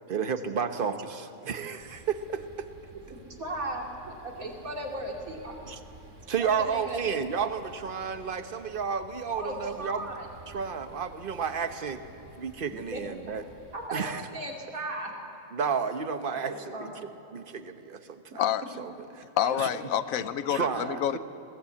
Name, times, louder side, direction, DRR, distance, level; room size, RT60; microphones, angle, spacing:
voice 1, 0.1-2.7 5.7-5.8 6.3-10.1 10.5-12.0 12.4-13.4 13.9-14.2 15.5-16.9 17.3-18.5 18.8-19.2 19.6-19.7 20.5-21.2, right 6 dB, 45° right, 9 dB, 1.1 m, -32 dB
sound 1, 1.8-13.9, right 1 dB, 60° right, 2.4 m, -51 dB
voice 2, 3.4-5.7 6.4-7.2 9.4-10.3 12.9-13.0 13.7-14.0 14.3-15.1 16.4-17.1 19.4-19.8, right 1 dB, 80° right, 1 dB, 3.1 m, -36 dB
voice 3, 19.4-21.2, left 10 dB, 75° left, 14 dB, 1.1 m, -28 dB
21.0 x 17.5 x 8.4 m, 2.8 s
omnidirectional pair, 1.4 m